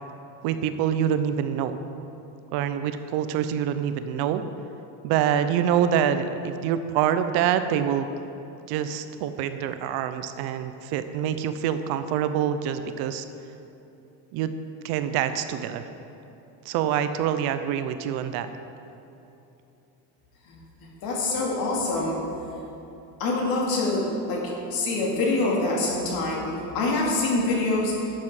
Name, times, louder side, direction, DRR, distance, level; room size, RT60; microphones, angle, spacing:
voice 1, 0.4-1.8 2.5-4.4 5.0-8.1 8.7-13.2 14.3-14.5 14.8-15.8 16.7-18.5, right 9 dB, 60° right, 10 dB, 0.6 m, -26 dB
voice 2, 21.0-22.2 23.2-28.0, left 2 dB, 55° left, -2 dB, 2.3 m, -25 dB
12.0 x 7.5 x 4.8 m, 2.9 s
cardioid pair, 170°, 43 cm